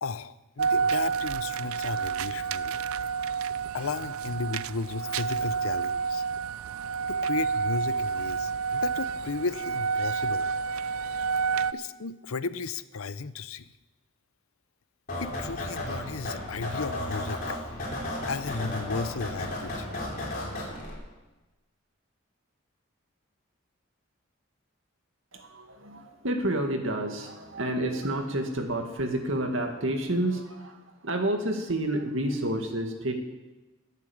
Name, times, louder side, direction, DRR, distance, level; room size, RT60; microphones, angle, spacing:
voice 1, 0.0-2.8 3.7-6.2 7.1-10.5 11.7-13.7 15.2-17.7 18.3-19.9, left 4 dB, 85° left, 14 dB, 0.7 m, -34 dB
sound 1, 0.6-11.7, right 5 dB, 85° right, 0.5 m, -29 dB
sound 2, 15.1-20.9, left 1 dB, 40° left, 4.7 m, -34 dB
voice 2, 25.3-33.1, right 1 dB, 65° right, 4 dB, 2.1 m, -29 dB
20.5 x 8.2 x 7.3 m, 1.1 s
head